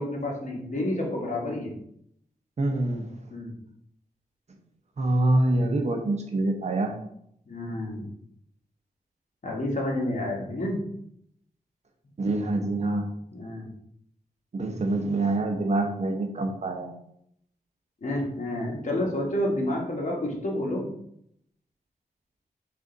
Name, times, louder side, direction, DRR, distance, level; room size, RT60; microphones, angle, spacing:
voice 1, 0.0-1.7 3.3-3.5 7.5-8.1 9.4-10.8 13.3-13.7 18.0-20.9, left 1 dB, 50° left, -2 dB, 1.2 m, -29 dB
voice 2, 2.6-3.1 5.0-6.9 12.2-13.0 14.5-16.9, right 2 dB, 45° right, 3 dB, 0.7 m, -25 dB
5.0 x 2.5 x 3.8 m, 0.72 s
wide cardioid pair, 120°, 16 cm